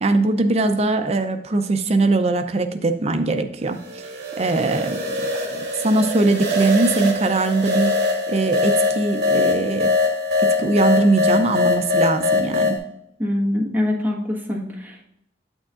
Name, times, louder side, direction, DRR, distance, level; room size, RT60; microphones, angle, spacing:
voice 1, 0.0-4.0 4.4-5.0 5.5-7.9 8.3-9.9 10.6-12.8, right 2 dB, 35° right, 8 dB, 0.5 m, -21 dB
sound 1, 3.7-12.8, left 3 dB, 60° right, 1.7 m, -22 dB
voice 2, 13.2-15.1, left 1 dB, 10° right, -3 dB, 1.2 m, -24 dB
8.7 x 6.2 x 2.4 m, 0.78 s
head